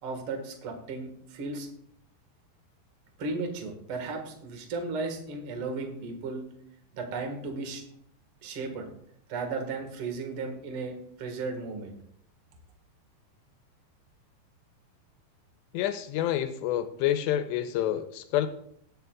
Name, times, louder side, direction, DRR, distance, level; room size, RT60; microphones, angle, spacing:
voice 1, 0.0-1.7 3.2-6.4 6.9-7.8 8.4-8.9 9.3-11.9, right 3 dB, 50° right, 4 dB, 1.8 m, -35 dB
voice 2, 15.7-18.5, left 12 dB, 85° left, 9 dB, 2.8 m, -28 dB
19.0 x 9.5 x 2.4 m, 0.68 s
omnidirectional pair, 5.0 m